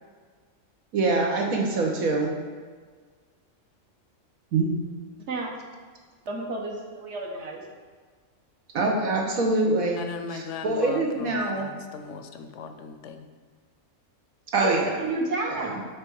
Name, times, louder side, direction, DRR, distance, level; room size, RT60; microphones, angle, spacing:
voice 1, 0.9-2.3 4.5-4.7 8.7-10.0 10.3-11.7 14.5-15.0 15.5-15.8, right 2 dB, 90° right, 0 dB, 1.5 m, -24 dB
voice 2, 6.3-7.6 14.6-15.8, right 3 dB, 60° right, 0 dB, 1.2 m, -30 dB
voice 3, 10.0-13.3, left 5 dB, 70° left, 7 dB, 0.9 m, -38 dB
8.0 x 3.4 x 4.6 m, 1.6 s
omnidirectional pair, 1.4 m